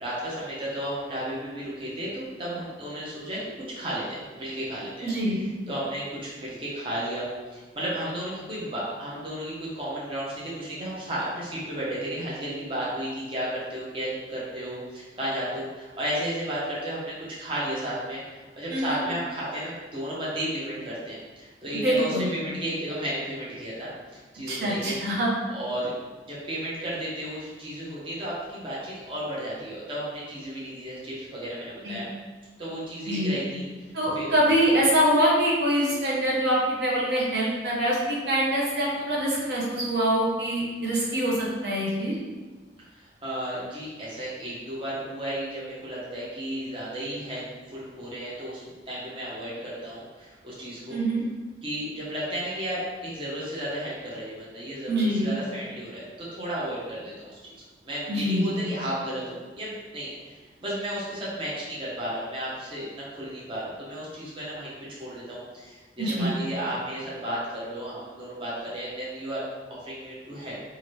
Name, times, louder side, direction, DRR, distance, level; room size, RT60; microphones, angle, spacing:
voice 1, 0.0-5.1 5.4-25.0 25.5-25.9 26.2-32.1 32.6-34.3 42.9-51.0 51.6-57.5 57.8-64.7 65.0-69.4 69.8-70.6, right 1 dB, 30° right, -7 dB, 0.7 m, -33 dB
voice 2, 5.0-5.4 18.7-19.0 21.8-22.3 24.5-25.3 31.8-32.0 33.1-33.3 33.9-42.2 50.9-51.2 54.9-55.3 58.1-58.4 66.0-66.3, equal, 65° right, -4 dB, 0.7 m, -24 dB
2.8 x 2.5 x 3.0 m, 1.3 s
head